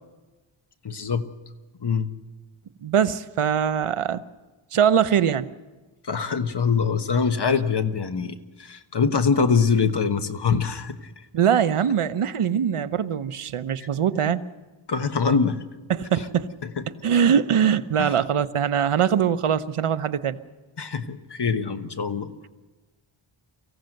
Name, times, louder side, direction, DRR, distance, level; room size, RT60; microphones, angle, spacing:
voice 1, 0.8-1.3 1.8-2.1 6.0-11.1 14.2-14.3 14.9-15.6 16.8-16.9 18.0-18.1 20.8-22.5, left 5 dB, 55° left, 9 dB, 1.3 m, -24 dB
voice 2, 2.8-4.2 4.7-5.5 11.3-14.4 15.9-16.5 17.0-20.4, right 8 dB, 85° right, 13 dB, 0.9 m, -22 dB
24.0 x 16.0 x 7.8 m, 1.2 s
wide cardioid pair, 90°, 50 cm